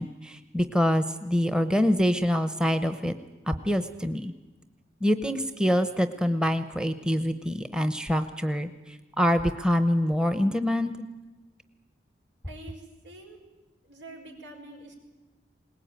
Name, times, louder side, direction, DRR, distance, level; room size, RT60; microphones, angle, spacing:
voice 1, 0.0-3.1 3.5-4.3 5.0-11.1, equal, 5° right, 9 dB, 0.8 m, -25 dB
voice 2, 12.5-13.4 13.8-14.9, right 2 dB, 90° right, 1 dB, 6.0 m, -46 dB
21.5 x 19.5 x 9.0 m, 1.2 s
head